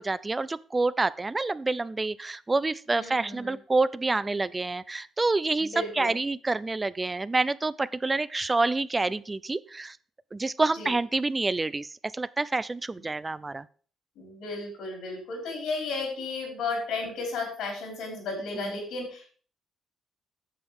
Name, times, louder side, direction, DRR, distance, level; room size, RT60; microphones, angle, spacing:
voice 1, 0.0-10.0 10.3-11.9 12.1-13.7 18.6-18.7, right 3 dB, 25° right, 17 dB, 0.5 m, -27 dB
voice 2, 2.9-3.6 5.6-6.1 10.8-10.9 14.2-19.3, left 3 dB, 80° left, 0 dB, 4.7 m, -34 dB
8.6 x 7.0 x 5.0 m, 0.43 s
supercardioid pair, 55°, 0 cm